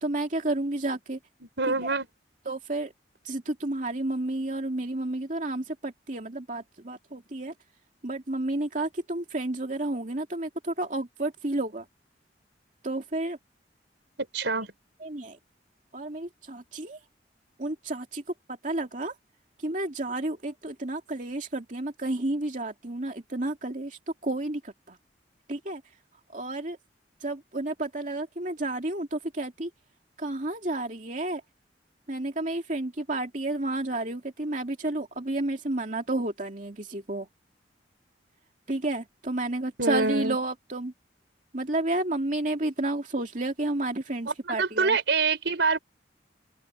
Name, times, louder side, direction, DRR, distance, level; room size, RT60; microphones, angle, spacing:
voice 1, 0.0-1.2 1.7-1.9 2.5-2.9 3.2-7.5 8.0-11.8 12.8-13.4 15.0-15.4 15.9-17.0 17.6-18.2 18.6-19.1 19.6-25.0 25.5-25.8 26.3-26.8 27.2-29.7 30.2-31.4 32.1-37.3 38.7-40.9 41.5-45.0, right 2 dB, 45° right, 2.5 m, -31 dB
voice 2, 1.6-2.1 14.3-14.7 39.8-40.4 44.3-45.8, right 4 dB, 85° right, 4.5 m, -25 dB
open air
head